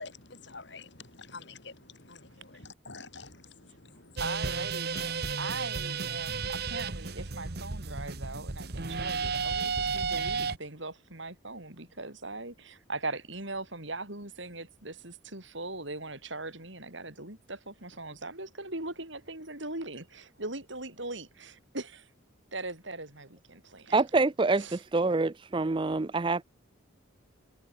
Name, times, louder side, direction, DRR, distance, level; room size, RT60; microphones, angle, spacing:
voice 1, 0.0-4.2 4.9-5.0, left 4 dB, 60° left, 3.0 m, -47 dB
sound 1, 4.2-10.6, right 5 dB, 50° right, 1.3 m, -33 dB
voice 2, 4.2-22.1 22.5-24.0 24.6-24.8, right 2 dB, 65° right, 8.0 m, -40 dB
voice 3, 23.9-26.4, right 3 dB, 25° right, 0.4 m, -26 dB
head